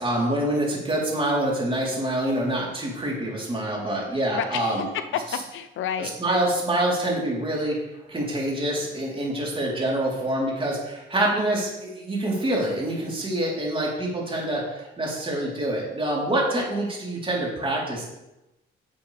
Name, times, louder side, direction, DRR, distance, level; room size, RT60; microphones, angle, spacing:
voice 1, 0.0-4.9 6.0-7.8 8.1-18.1, right 1 dB, 25° right, -4 dB, 3.7 m, -26 dB
voice 2, 4.3-6.4, left 8 dB, 80° left, 9 dB, 0.7 m, -31 dB
11.0 x 6.9 x 3.4 m, 0.96 s
cardioid pair, 90°, 20 cm